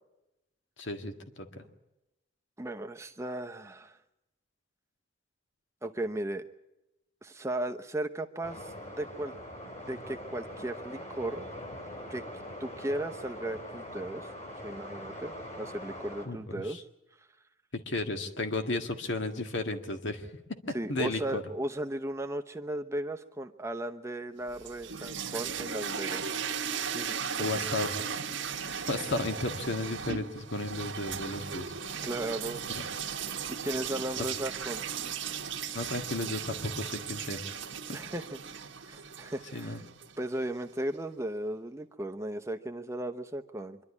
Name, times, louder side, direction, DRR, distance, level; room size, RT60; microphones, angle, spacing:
voice 1, 0.8-1.6 16.2-16.8 17.9-21.4 27.4-27.9 28.9-31.7 32.8-32.9 34.2-34.3 35.7-37.4 37.9-38.0 39.5-39.8, left 2 dB, 65° left, 6 dB, 1.8 m, -34 dB
voice 2, 2.6-4.0 5.8-6.4 7.2-9.3 9.9-11.5 12.1-12.2 12.6-14.3 14.6-16.8 20.7-26.4 26.9-27.5 32.0-32.6 33.6-34.8 37.9-38.4 38.8-39.8 40.2-43.8, right 1 dB, 15° right, 6 dB, 0.9 m, -36 dB
sound 1, 8.4-16.3, left 1 dB, 35° left, 3.2 m, -42 dB
sound 2, 24.5-40.5, right 7 dB, 70° right, 1.4 m, -37 dB
25.0 x 12.0 x 9.7 m, 0.94 s
head